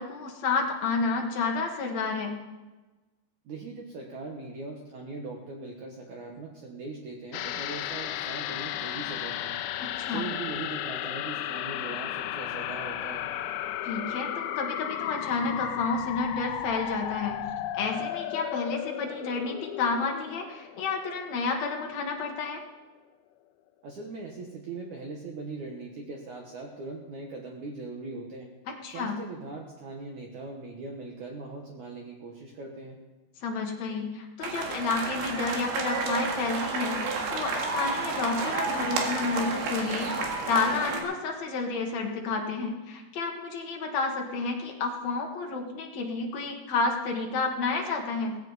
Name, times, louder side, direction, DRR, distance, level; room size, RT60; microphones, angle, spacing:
voice 1, 0.0-2.3 9.8-10.3 13.8-17.4 17.7-22.6 28.7-29.2 33.4-48.4, left 4 dB, 60° left, 1 dB, 2.0 m, -30 dB
voice 2, 3.5-9.6 10.0-13.2 23.8-28.5 28.9-33.0, right 3 dB, 65° right, 0 dB, 2.0 m, -40 dB
sound 1, 7.3-22.0 22.3-22.4, left 12 dB, 85° left, 2.1 m, -34 dB
sound 2, 34.4-41.0, right 3 dB, 85° right, 4.2 m, -31 dB
17.0 x 16.0 x 4.1 m, 1.2 s
omnidirectional pair, 5.1 m